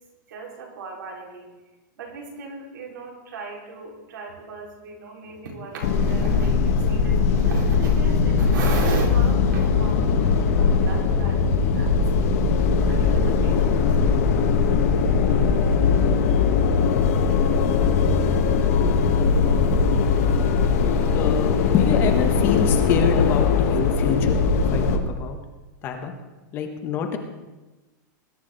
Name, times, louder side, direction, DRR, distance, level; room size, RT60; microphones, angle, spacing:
voice 1, 0.3-1.5 2.0-12.0 12.2-12.4 12.9-13.9, right 4 dB, 90° right, -1 dB, 4.6 m, -35 dB
sound 1, 5.8-25.0, left 5 dB, 50° left, 1.5 m, -20 dB
voice 2, 18.8-19.2 21.1-24.4 24.7-25.4 25.8-26.1 26.5-27.2, left 7 dB, 20° left, 5 dB, 1.1 m, -27 dB
20.5 x 11.0 x 3.9 m, 1.1 s
supercardioid pair, 175°, 10 cm